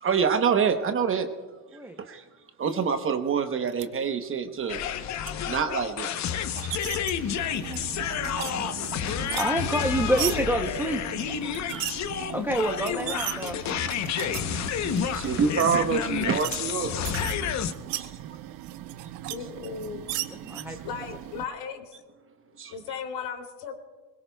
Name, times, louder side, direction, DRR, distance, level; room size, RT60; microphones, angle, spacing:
voice 1, 0.0-1.3 2.0-2.2 2.6-4.8 5.5-6.1 8.6-8.7 9.1-9.2 11.5-12.3 13.4-16.9 17.9-18.1 22.6-22.7, right 6 dB, 25° right, 7 dB, 0.9 m, -27 dB
sound 1, 3.7-3.8 4.7-5.3 6.3-7.1 7.6-8.5 8.8-10.4 11.5-12.0 12.6-12.7 12.9-14.4 14.9-15.2 15.5-15.6 16.1-16.6 16.8-18.1 18.6-19.3 19.6-20.6, right 16 dB, 90° right, 1.1 m, -35 dB
sound 2, 4.7-17.7, left 9 dB, 35° left, 0.8 m, -30 dB
voice 2, 6.4-7.1 7.5-11.8 12.3-13.6 20.3-20.8, right 1 dB, 5° right, 3 dB, 0.7 m, -30 dB
sound 3, 7.2-21.5, right 13 dB, 45° right, 0.7 m, -41 dB
voice 3, 19.3-20.1 20.8-21.9 22.7-23.7, left 6 dB, 55° left, 4 dB, 3.0 m, -36 dB
22.5 x 21.5 x 2.3 m, 1.3 s
supercardioid pair, 120°, 48 cm